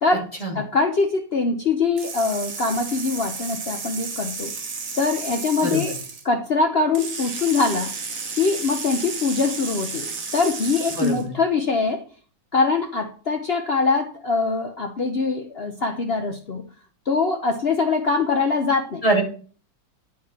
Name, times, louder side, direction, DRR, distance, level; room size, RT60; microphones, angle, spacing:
voice 1, 0.5-4.5 5.0-6.0 6.2-7.9 8.4-12.0 12.5-16.6 17.1-19.0, left 4 dB, 55° left, 4 dB, 0.6 m, -23 dB
sound 1, 2.0-6.2 6.9-11.2, right 4 dB, 50° right, 1.6 m, -32 dB
voice 2, 11.0-11.3 19.0-19.2, right 2 dB, 20° left, -1 dB, 2.4 m, -22 dB
10.0 x 5.0 x 4.2 m, 0.40 s
omnidirectional pair, 2.0 m